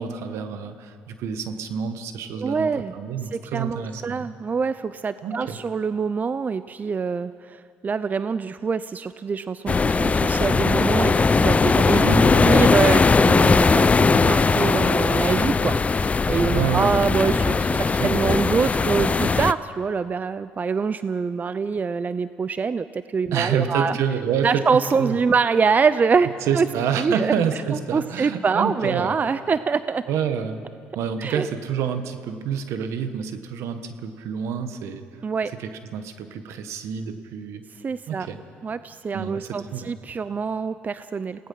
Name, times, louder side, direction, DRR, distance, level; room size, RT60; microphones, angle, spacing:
voice 1, 0.0-4.3 5.2-5.6 11.9-12.7 16.4-17.0 17.7-18.2 23.3-24.6 25.0-25.2 26.5-29.1 30.1-30.6 30.9-35.0 35.6-37.6 38.1-38.4 39.1-39.9, right 7 dB, 70° right, 8 dB, 1.6 m, -28 dB
voice 2, 2.4-2.9 3.3-24.0 24.4-26.7 27.0-27.3 27.9-30.0 31.2-31.5 35.2-35.5 37.8-38.3 38.6-41.5, right 5 dB, 35° right, 14 dB, 0.6 m, -25 dB
sound 1, 9.7-19.5, left 4 dB, 25° left, 0.6 m, -19 dB
28.0 x 18.0 x 5.7 m, 2.2 s
supercardioid pair, 65°, 5 cm